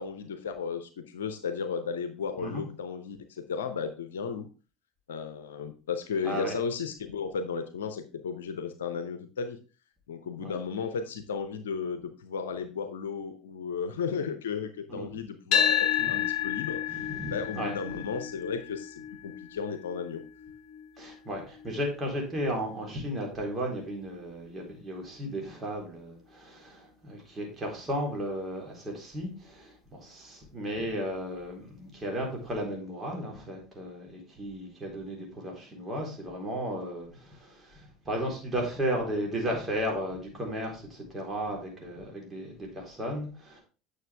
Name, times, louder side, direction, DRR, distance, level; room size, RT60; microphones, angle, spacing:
voice 1, 0.0-4.5 5.1-9.6 10.1-17.0 17.3-20.2, left 6 dB, 75° left, 0.7 m, -34 dB
voice 2, 6.2-6.6 10.4-10.6 14.9-15.1 16.0-16.3 16.9-17.8 21.0-43.6, equal, 25° right, 3.9 m, -35 dB
sound 1, 15.5-23.7, left 10 dB, 50° left, 1.1 m, -32 dB
9.1 x 6.6 x 3.4 m
hypercardioid pair, 70°, 0 cm